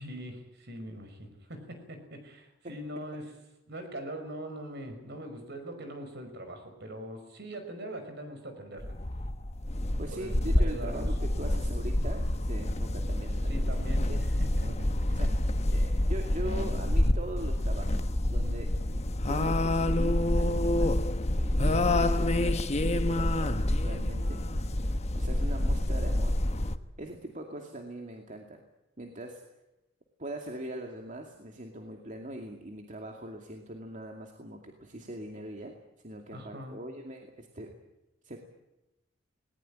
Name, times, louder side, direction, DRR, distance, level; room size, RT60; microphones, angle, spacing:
voice 1, 0.0-3.3 3.7-9.0 10.1-11.1 13.5-15.2 36.3-36.8, right 1 dB, 60° right, 7 dB, 5.6 m, -42 dB
sound 1, 8.8-26.8, left 1 dB, 35° left, 1.1 m, -27 dB
voice 2, 10.0-13.7 14.1-14.2 14.6-14.8 15.1-18.7 19.3-21.0 21.4-24.4 24.8-26.3 27.0-28.6 29.0-29.4 30.2-35.7 36.0-37.7 38.2-38.4, right 1 dB, 40° right, 3 dB, 2.4 m, -41 dB
19.5 x 19.5 x 9.0 m, 0.94 s
head